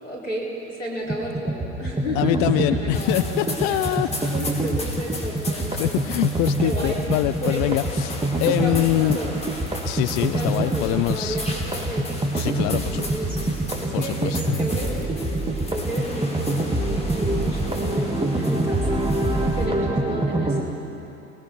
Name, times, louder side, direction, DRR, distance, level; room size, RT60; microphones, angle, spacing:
voice 1, 0.0-6.1 6.6-7.0 7.4-7.8 8.4-9.4 10.3-13.5 13.8-15.0 15.7-19.0 19.5-20.6, equal, 90° left, -4 dB, 4.6 m, -32 dB
sound 1, 1.1-20.6, right 2 dB, 15° right, 2.4 m, -25 dB
voice 2, 2.1-4.1 5.7-9.2 9.8-11.4 12.3-13.1 13.9-14.6, left 17 dB, 55° left, 12 dB, 0.6 m, -24 dB
sound 2, 2.9-19.7, left 2 dB, 20° left, 4.6 m, -37 dB
29.0 x 21.0 x 4.7 m, 2.9 s
figure-of-eight pair, 70°, 36 cm